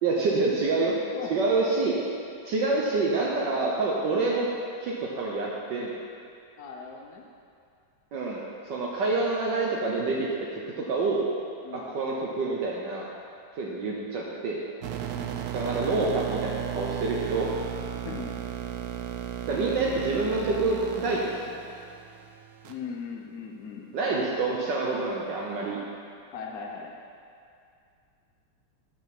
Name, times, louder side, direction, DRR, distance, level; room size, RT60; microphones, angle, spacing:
voice 1, 0.0-0.9 1.3-2.0 2.4-4.5 4.8-5.9 8.1-8.4 8.7-11.2 11.7-13.1 13.6-14.6 15.5-17.5 19.5-21.3 23.9-25.8, right 3 dB, 60° right, -3 dB, 1.4 m, -27 dB
voice 2, 0.9-1.5 4.1-4.2 6.6-7.2 11.6-11.9 13.6-13.8 15.1-15.5 17.8-18.3 22.6-23.9 26.3-26.9, left 6 dB, 65° left, 1 dB, 0.9 m, -39 dB
sound 1, 14.8-22.7, right 10 dB, 85° right, 0.8 m, -35 dB
11.0 x 5.2 x 5.9 m, 2.4 s
omnidirectional pair, 2.4 m